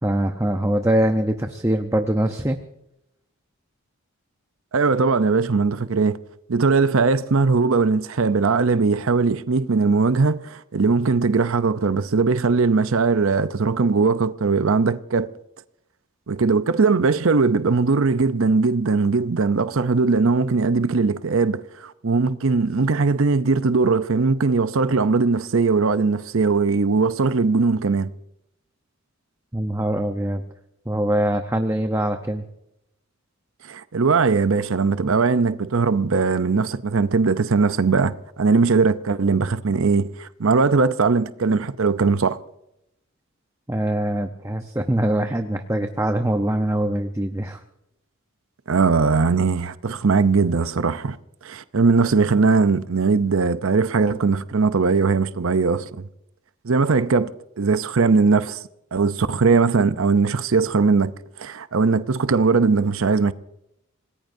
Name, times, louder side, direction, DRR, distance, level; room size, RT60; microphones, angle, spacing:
voice 1, 0.0-2.6 29.5-30.4 30.9-32.4 43.7-47.6, right 1 dB, 15° right, 0.7 m, -23 dB
voice 2, 4.7-6.2 6.5-15.3 16.3-28.1 33.6-42.4 48.7-51.2 51.4-56.0 56.6-57.3 57.6-58.6 58.9-61.1 61.4-63.3, right 4 dB, 65° right, 0.6 m, -20 dB
26.5 x 19.5 x 2.7 m
head